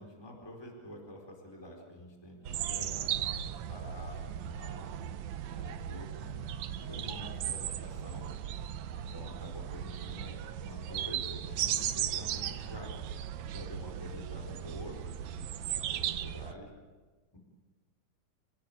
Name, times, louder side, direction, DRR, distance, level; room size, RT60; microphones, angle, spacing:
voice 1, 0.0-4.9 5.5-6.4 6.8-8.3 9.1-12.9 13.5-15.0 15.4-16.7 17.3-17.4, equal, 5° left, 1 dB, 4.4 m, -48 dB
sound 1, 2.4-16.5, right 10 dB, 70° right, 2.1 m, -37 dB
28.5 x 18.0 x 8.7 m, 1.3 s
omnidirectional pair, 3.5 m